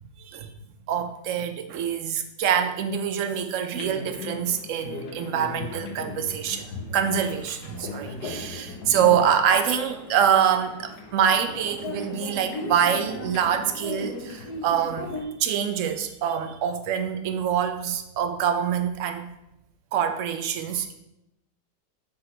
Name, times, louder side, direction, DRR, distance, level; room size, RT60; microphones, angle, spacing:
voice 1, 0.2-0.5 0.9-15.1 15.4-19.3 19.9-20.9, right 8 dB, 60° right, 8 dB, 0.8 m, -25 dB
sound 1, 3.7-15.2, left 2 dB, 65° left, 1.6 m, -37 dB
7.5 x 6.1 x 4.4 m, 0.88 s
omnidirectional pair, 1.9 m